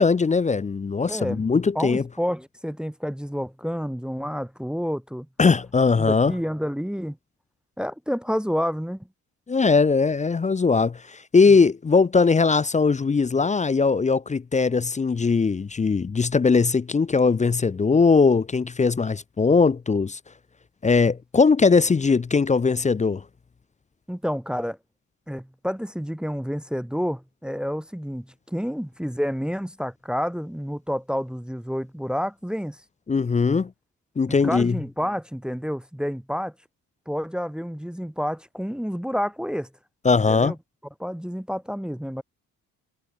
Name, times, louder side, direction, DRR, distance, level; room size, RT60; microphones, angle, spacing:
voice 1, 0.0-2.0 5.4-6.3 9.5-20.2 20.8-23.2 33.1-33.7 34.2-34.8 40.0-40.5, left 4 dB, 20° left, 0.5 m, -20 dB
voice 2, 1.1-1.5 1.7-5.3 6.0-7.2 7.8-9.1 24.1-24.8 25.3-32.8 34.3-36.5 37.1-39.7 40.3-40.6 41.0-42.2, equal, ahead, 1.3 m, -29 dB
supercardioid pair, 75°, 37 cm